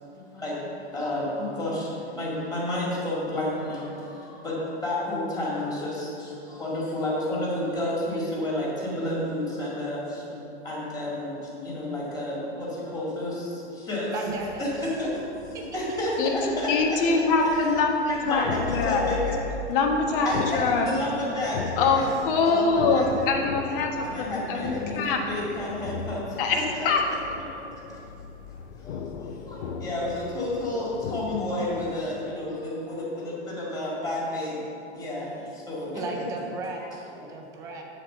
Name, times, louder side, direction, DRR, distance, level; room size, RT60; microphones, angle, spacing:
voice 1, 0.2-14.1 14.6-14.7 15.0-17.2 17.5-17.7 18.1-19.4 20.2-22.1 22.4-23.1 24.0-26.4 28.8-34.6 34.9-36.2 36.8-37.2, left 1 dB, 10° left, -7 dB, 2.0 m, -31 dB
voice 2, 14.1-14.7 15.5-15.7 17.0-17.1 35.9-37.8, right 3 dB, 10° right, 1 dB, 0.3 m, -35 dB
sound 1, 14.3-32.0, left 5 dB, 70° left, 0.6 m, -37 dB
voice 3, 16.7-18.0 18.2-18.4 18.7-19.1 19.7-20.3 20.5-20.9 21.8-25.2 26.4-26.6 26.8-27.0, left 4 dB, 50° left, 2 dB, 1.2 m, -23 dB
7.9 x 4.1 x 6.6 m, 2.7 s
hypercardioid pair, 150°, 35 cm